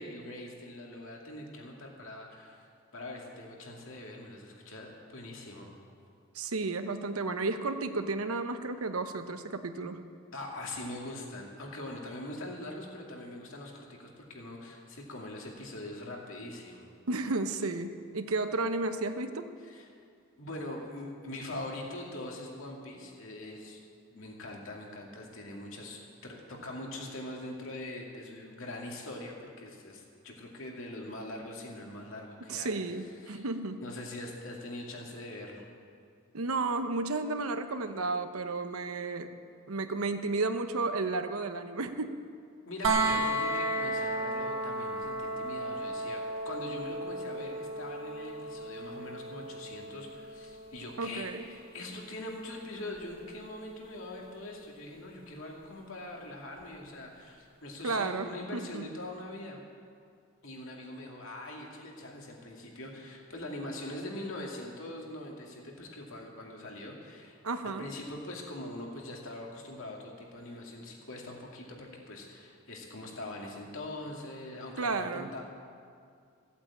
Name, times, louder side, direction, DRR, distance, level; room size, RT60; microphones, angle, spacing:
voice 1, 0.0-2.6 2.9-5.7 10.3-16.9 19.6-19.9 20.4-23.8 24.1-32.8 33.2-33.5 33.8-35.7 42.6-59.6 60.4-75.4, left 1 dB, 65° left, -1 dB, 2.4 m, -42 dB
voice 2, 6.3-10.0 17.1-19.5 32.5-33.8 36.3-39.3 39.7-42.1 51.0-51.4 57.8-58.8 67.4-67.9 74.8-75.3, right 3 dB, 80° right, 8 dB, 0.9 m, -32 dB
sound 1, 42.8-54.7 56.6-56.7, right 2 dB, 60° right, 1.6 m, -35 dB
15.0 x 8.5 x 8.6 m, 2.3 s
head